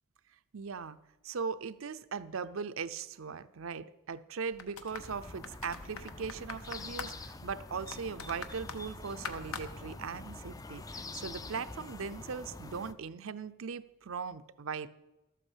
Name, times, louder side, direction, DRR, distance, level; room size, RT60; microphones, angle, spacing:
voice 1, 0.5-1.0 1.2-14.9, right 5 dB, 65° right, 13 dB, 0.6 m, -39 dB
sound 1, 4.5-10.4 10.7-10.8, left 5 dB, 75° left, 1.1 m, -46 dB
sound 2, 4.9-12.9, left 3 dB, 15° left, 0.4 m, -46 dB
13.0 x 8.2 x 7.3 m, 1.0 s
head